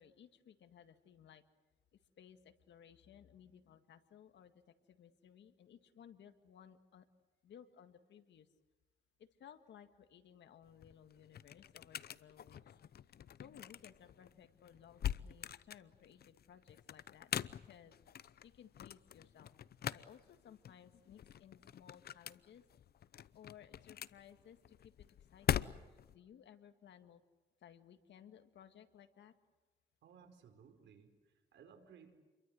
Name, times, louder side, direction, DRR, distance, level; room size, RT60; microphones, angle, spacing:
voice 1, 0.0-1.4 1.9-7.1 7.4-8.5 9.2-12.7 13.4-19.5 19.9-22.6 23.3-27.2 27.6-29.3, left 9 dB, 80° left, 8 dB, 2.0 m, -60 dB
sound 1, 10.6-26.2, left 10 dB, 60° left, 0.8 m, -44 dB
voice 2, 30.0-32.1, right 7 dB, 90° right, 5 dB, 4.8 m, -61 dB
29.0 x 23.0 x 7.8 m, 1.3 s
cardioid pair, 115°, 18 cm